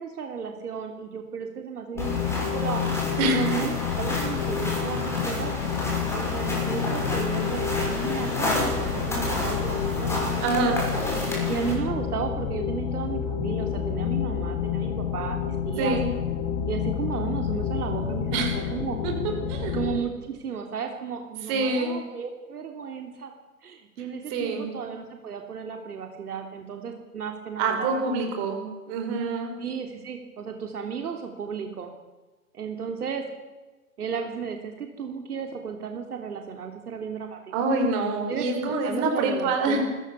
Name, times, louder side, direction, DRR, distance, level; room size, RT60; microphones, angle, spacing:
voice 1, 0.0-2.8 3.2-5.5 6.1-10.9 11.5-16.0 16.7-19.0 19.7-23.3 23.6-28.0 29.6-31.9 32.5-33.3 34.0-37.4 38.3-39.8, right 6 dB, 70° right, 4 dB, 3.3 m, -34 dB
sound 1, 2.0-20.0, left 8 dB, 35° left, 2.1 m, -29 dB
sound 2, 2.0-11.7, left 1 dB, 5° left, 6.4 m, -31 dB
voice 2, 10.4-10.8 15.8-16.1 18.3-18.6 19.0-19.1 19.5-19.8 21.5-22.0 24.3-24.7 27.6-29.5 37.5-39.8, right 3 dB, 30° right, 3 dB, 5.5 m, -26 dB
28.0 x 14.5 x 7.1 m, 1.2 s
hypercardioid pair, 135°, 47 cm